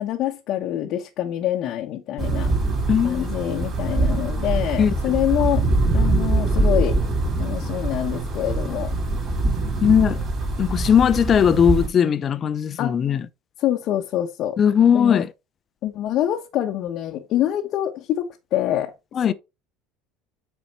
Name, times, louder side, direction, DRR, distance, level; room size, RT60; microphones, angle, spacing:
voice 1, 0.0-2.5 3.0-5.7 5.9-7.0 7.4-8.9 12.8-12.9 13.6-14.6 14.9-15.2 15.8-18.9 19.2-19.3, left 12 dB, 55° left, 1.0 m, -25 dB
sound 1, 2.2-11.9, right 2 dB, 40° right, 4.0 m, -23 dB
voice 2, 2.9-3.3 4.8-5.1 9.8-10.2 10.6-13.3 14.6-15.3 19.1-19.3, left 8 dB, 35° left, 0.7 m, -18 dB
8.0 x 4.6 x 4.2 m
supercardioid pair, 115°, 0 cm